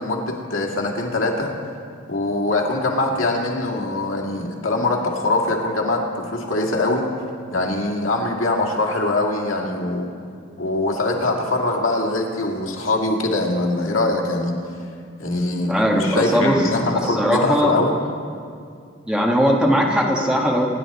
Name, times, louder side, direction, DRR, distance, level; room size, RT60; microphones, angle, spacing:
voice 1, 0.0-1.5 2.1-7.0 7.5-10.1 10.6-14.5 15.2-18.0, left 2 dB, 90° left, 0 dB, 2.1 m, -22 dB
voice 2, 15.7-16.6 16.9-17.8 19.1-20.7, equal, 5° right, -1 dB, 1.5 m, -19 dB
25.5 x 10.5 x 4.2 m, 2.3 s
head